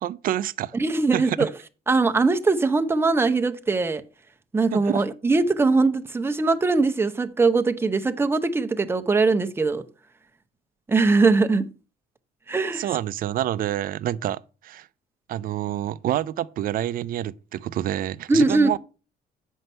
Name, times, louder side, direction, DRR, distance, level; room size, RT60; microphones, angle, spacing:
voice 1, 0.0-0.8 1.1-1.4 4.7-5.0 12.7-14.9 15.3-18.8, right 12 dB, 60° right, 0.5 m, -28 dB
voice 2, 0.7-1.5 1.9-4.0 4.5-9.8 10.9-11.7 12.5-12.9 18.3-18.8, right 3 dB, 15° right, 0.7 m, -21 dB
7.8 x 5.5 x 5.4 m
cardioid pair, 110°, 17 cm